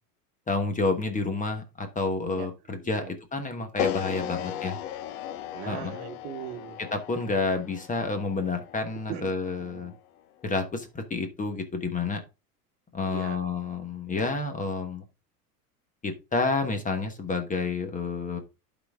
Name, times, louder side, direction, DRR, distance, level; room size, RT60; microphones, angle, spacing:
voice 1, 0.5-4.8 5.7-5.9 6.9-9.9 10.4-12.2 12.9-15.0 16.0-18.4, left 3 dB, 15° left, 1.3 m, -29 dB
voice 2, 2.2-3.1 4.2-4.6 5.5-6.8 9.1-9.3 9.6-10.0 13.0-13.4, right 11 dB, 55° right, 1.2 m, -41 dB
sound 1, 3.8-10.0, left 11 dB, 65° left, 0.9 m, -36 dB
11.5 x 4.2 x 3.5 m
supercardioid pair, 115°, 46 cm